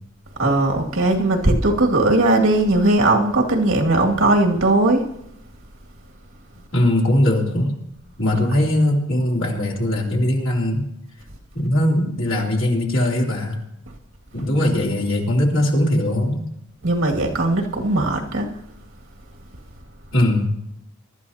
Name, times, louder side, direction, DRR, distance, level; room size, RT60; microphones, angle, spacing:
voice 1, 0.4-5.0 16.8-18.5, right 2 dB, 90° right, 1 dB, 2.2 m, -18 dB
voice 2, 6.7-7.7 8.2-10.9 11.5-13.6 14.3-16.5 20.1-20.5, left 1 dB, 80° left, -2 dB, 3.3 m, -20 dB
23.0 x 12.5 x 2.8 m, 0.79 s
head